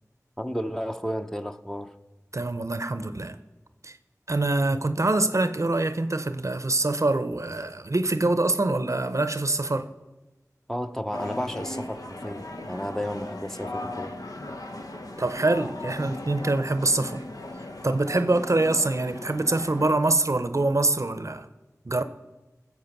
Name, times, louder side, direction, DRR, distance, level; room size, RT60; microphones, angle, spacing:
voice 1, 0.4-1.9 10.7-14.1, equal, 5° left, 0.7 m, -32 dB
voice 2, 2.3-3.4 3.8-3.9 4.3-9.9 15.2-17.2 17.8-21.5 21.9-22.0, right 2 dB, 55° right, 0.6 m, -25 dB
sound 1, 11.1-20.0, left 2 dB, 80° left, 0.9 m, -38 dB
16.0 x 7.3 x 5.9 m
wide cardioid pair, 40°, 6 cm